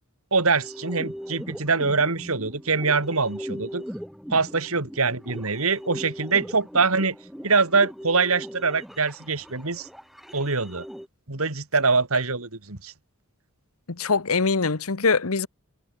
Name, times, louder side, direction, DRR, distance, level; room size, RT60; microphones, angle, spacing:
voice 1, 0.3-3.8 4.3-7.1 7.4-9.9 10.3-10.8 11.3-12.9, right 4 dB, 70° right, 2.5 m, -24 dB
sound 1, 0.6-11.1, equal, ahead, 4.2 m, -39 dB
voice 2, 14.0-15.5, left 4 dB, 70° left, 1.1 m, -23 dB
head